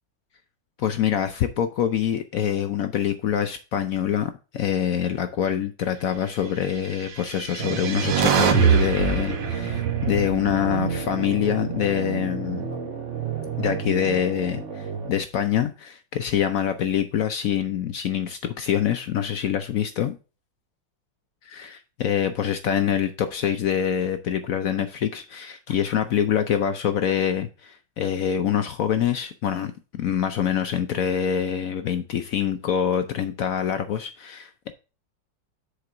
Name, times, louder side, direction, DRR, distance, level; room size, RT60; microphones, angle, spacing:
voice 1, 0.8-12.7 13.6-20.2 21.4-34.7, left 9 dB, 70° left, 0.8 m, -25 dB
sound 1, 7.1-11.4, right 8 dB, 75° right, 1.7 m, -24 dB
sound 2, 7.6-15.1, right 6 dB, 45° right, 1.5 m, -32 dB
6.6 x 4.1 x 5.9 m
omnidirectional pair, 2.0 m